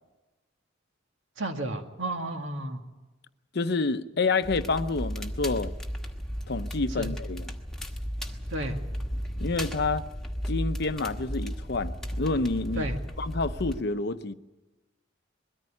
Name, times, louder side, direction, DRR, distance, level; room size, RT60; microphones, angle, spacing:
voice 1, 1.4-2.8 7.0-7.1 8.5-8.8 12.8-13.0, right 1 dB, 75° right, 2.0 m, -32 dB
voice 2, 3.5-5.7 6.5-7.5 9.4-10.0 10.5-12.9 13.2-14.3, left 3 dB, 55° left, 0.7 m, -28 dB
Crackle, 4.4-13.8, equal, ahead, 1.4 m, -34 dB
22.0 x 14.0 x 9.9 m
head